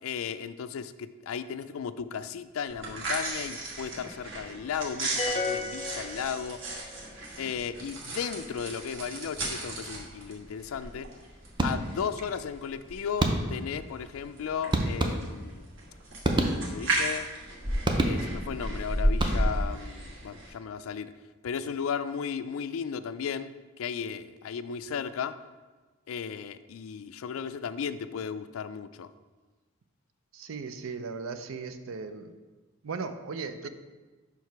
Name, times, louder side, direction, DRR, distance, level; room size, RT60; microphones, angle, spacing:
voice 1, 0.0-6.6 7.4-11.1 11.6-15.7 16.5-17.3 18.0-21.1 21.4-23.5 23.8-25.4 26.1-29.1, left 7 dB, 90° left, 13 dB, 0.4 m, -35 dB
sound 1, 2.7-20.5, right 1 dB, 65° right, 1.4 m, -34 dB
sound 2, 5.2-6.9, left 4 dB, 25° left, 0.5 m, -33 dB
sound 3, 11.6-12.1 13.2-13.8 14.7-15.6 16.2-17.0 17.8-18.6 19.1-19.8, right 1 dB, 25° right, 0.5 m, -28 dB
voice 2, 30.3-32.3 32.8-33.7, right 4 dB, 90° right, 9 dB, 0.5 m, -37 dB
5.7 x 4.6 x 4.6 m, 1.3 s
head